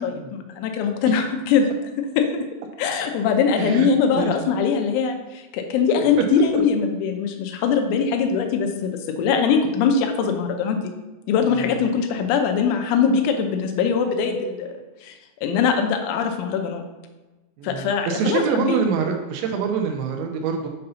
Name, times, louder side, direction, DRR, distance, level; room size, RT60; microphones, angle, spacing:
voice 1, 0.0-1.7 2.0-2.3 2.8-8.9 9.2-10.9 11.3-14.7 15.0-15.1 15.4-16.8 17.6-18.8, left 6 dB, 85° left, 4 dB, 3.2 m, -22 dB
voice 2, 3.6-3.9 4.1-4.3 11.4-11.8 14.3-14.4 17.6-20.7, right 6 dB, 80° right, 3 dB, 2.9 m, -26 dB
7.7 x 2.7 x 5.5 m, 1.1 s
omnidirectional pair, 5.4 m